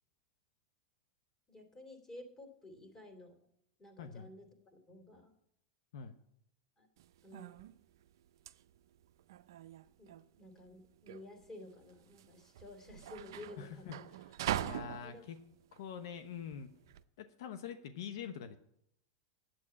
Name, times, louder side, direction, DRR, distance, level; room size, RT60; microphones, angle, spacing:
voice 1, 1.5-3.3 3.8-4.5 4.9-5.3 6.8-6.9 7.2-7.6 10.0-14.0 15.0-15.2, left 1 dB, 20° left, 5 dB, 2.8 m, -52 dB
voice 2, 4.0-4.3 5.9-6.2 13.6-14.4 14.6-15.4 15.7-16.7 17.2-18.6, left 7 dB, 75° left, 9 dB, 0.8 m, -45 dB
sound 1, 7.0-17.0, right 12 dB, 75° right, 0.5 m, -43 dB
8.8 x 7.8 x 8.5 m, 0.74 s
hypercardioid pair, 115°, 2 cm